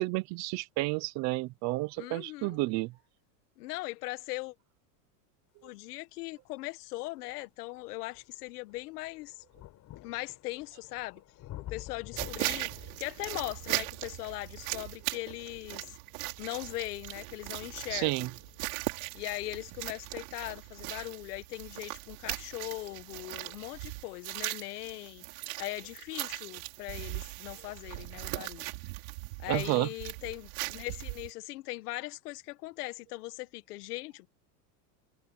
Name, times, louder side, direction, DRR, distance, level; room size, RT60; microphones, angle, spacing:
voice 1, 0.0-2.9 17.9-18.3 29.5-29.9, right 22 dB, 35° right, 0.6 m, -30 dB
voice 2, 2.0-2.6 3.6-4.5 5.6-9.3 10.0-11.2 11.7-12.7 13.0-15.9 16.4-18.3 19.1-28.7 29.4-34.3, left 20 dB, 70° left, 1.9 m, -40 dB
sound 1, 6.6-6.7 7.3-22.0 22.9-23.0, left 14 dB, 35° left, 5.4 m, -52 dB
sound 2, 12.2-31.3, right 27 dB, 60° right, 6.1 m, -39 dB
supercardioid pair, 150°, 48 cm